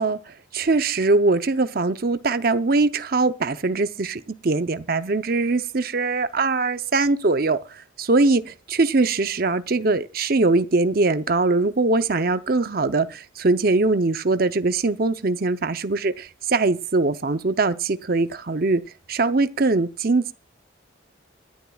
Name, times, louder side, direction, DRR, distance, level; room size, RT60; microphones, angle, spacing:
voice 1, 0.0-7.6 8.1-18.8 19.1-20.3, right 3 dB, 50° right, 0.7 m, -22 dB
25.0 x 10.5 x 2.3 m
head